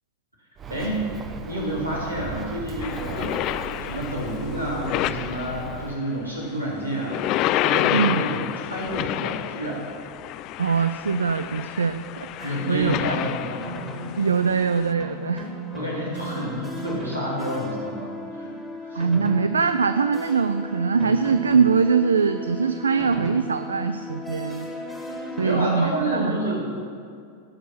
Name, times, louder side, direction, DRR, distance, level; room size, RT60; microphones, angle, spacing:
Bird, 0.6-6.0, right 6 dB, 25° right, 0.8 m, -37 dB
voice 1, 0.7-1.1 1.5-3.4 3.8-9.8 12.4-13.7 15.7-18.5 18.8-19.0 25.2-26.8, equal, 90° right, -6 dB, 3.6 m, -29 dB
sound 1, 2.8-5.9 6.9-14.9, left 14 dB, 40° left, 0.3 m, -29 dB
voice 2, 7.9-8.2 10.6-12.9 14.2-15.5 18.9-24.7 25.4-26.4, right 5 dB, 75° right, 10 dB, 0.4 m, -22 dB
sound 2, 12.4-25.5, left 1 dB, 5° right, 1.9 m, -36 dB
17.5 x 6.5 x 5.9 m, 2.3 s
figure-of-eight pair, 90°, 0 cm